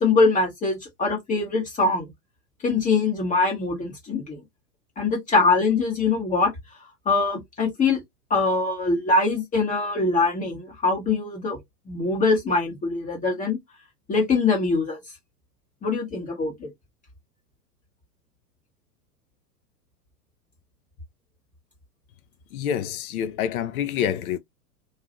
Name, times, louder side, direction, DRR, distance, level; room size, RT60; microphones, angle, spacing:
voice 1, 0.0-2.1 2.6-4.4 5.0-6.5 7.1-8.0 8.3-11.6 11.9-13.6 14.1-15.0 15.8-16.7, left 3 dB, 15° left, 0.8 m, -23 dB
voice 2, 22.5-24.4, left 9 dB, 65° left, 0.5 m, -27 dB
2.7 x 2.4 x 2.5 m
figure-of-eight pair, 100°, 48 cm